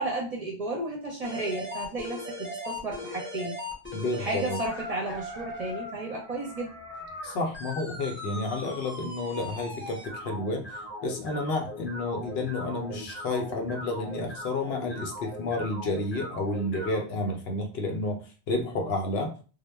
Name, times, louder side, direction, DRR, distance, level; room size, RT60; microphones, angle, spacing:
voice 1, 0.0-3.6 4.2-6.7, right 2 dB, 45° right, -1 dB, 0.6 m, -33 dB
sound 1, 1.2-17.0, left 1 dB, 15° left, 0.5 m, -39 dB
voice 2, 3.9-4.6 7.2-19.3, left 2 dB, 70° left, 3 dB, 0.8 m, -31 dB
2.1 x 2.0 x 3.2 m, 0.37 s
omnidirectional pair, 1.1 m